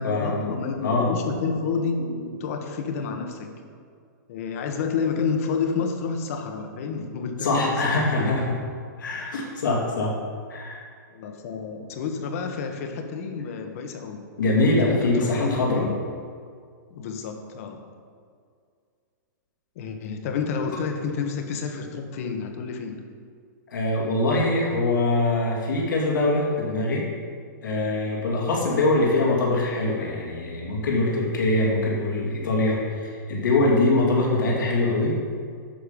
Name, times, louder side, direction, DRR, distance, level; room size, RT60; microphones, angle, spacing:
voice 1, 0.0-3.5 4.3-8.4 11.1-14.2 14.7-16.0 16.9-17.8 19.7-23.0, left 5 dB, 50° left, 5 dB, 1.4 m, -29 dB
voice 2, 7.4-8.5 9.0-10.1 10.5-10.8 14.4-15.8 23.7-27.0 27.6-35.1, left 2 dB, 85° left, -4 dB, 2.9 m, -23 dB
10.5 x 6.7 x 5.3 m, 2.2 s
hypercardioid pair, 155°, 10 cm